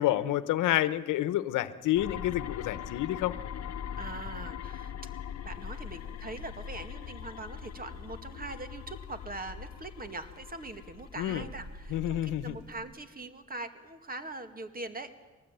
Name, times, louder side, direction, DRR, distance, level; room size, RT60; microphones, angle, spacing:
voice 1, 0.0-3.3 11.2-11.4 11.9-12.6, left 14 dB, 90° left, 14 dB, 1.0 m, -29 dB
sound 1, 2.0-12.7, left 9 dB, 55° left, 1.2 m, -42 dB
voice 2, 4.0-4.9 5.4-15.1, right 2 dB, 30° right, 9 dB, 2.3 m, -42 dB
sound 2, 5.5-6.9 7.4-8.7 9.2-10.6 10.9-12.9, right 2 dB, 60° right, 4.9 m, -49 dB
22.5 x 19.5 x 9.2 m, 1.2 s
cardioid pair, 90°, 30 cm